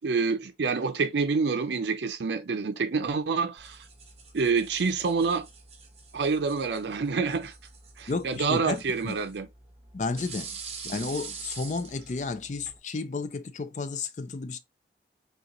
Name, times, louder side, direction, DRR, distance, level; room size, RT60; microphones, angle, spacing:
voice 1, 0.0-3.8 4.3-5.5 6.1-7.5 8.0-9.5, right 4 dB, 80° right, 0.5 m, -27 dB
sound 1, 3.6-12.8, right 5 dB, 35° right, 1.1 m, -45 dB
voice 2, 8.1-9.1 9.9-10.5 10.8-14.6, left 3 dB, 45° left, 0.4 m, -32 dB
6.4 x 2.3 x 3.0 m
head